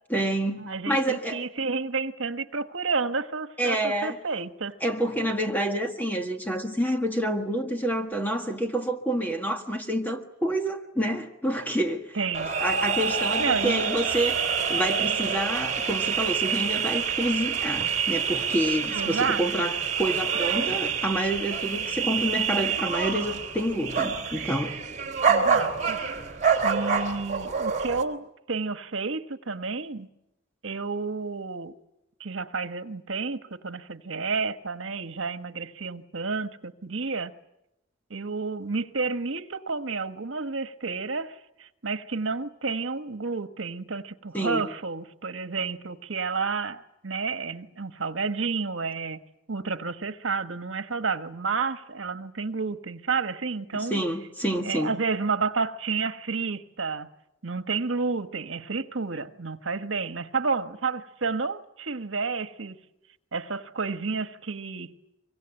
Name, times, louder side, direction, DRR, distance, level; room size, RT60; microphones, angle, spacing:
voice 1, 0.1-1.4 3.6-4.2 4.8-12.2 12.6-14.4 14.7-24.8 44.3-44.7 53.7-54.9, right 1 dB, 10° left, 1.6 m, -28 dB
voice 2, 0.6-4.8 12.1-12.5 13.4-13.9 18.9-19.7 25.3-26.0 26.6-30.1 30.6-31.7 32.2-37.3 38.1-49.2 49.5-54.0 54.6-57.1 57.4-62.8 63.3-64.9, right 4 dB, 80° right, 1.4 m, -30 dB
sound 1, 12.3-28.0, right 6 dB, 40° right, 3.2 m, -27 dB
24.5 x 24.0 x 8.9 m
head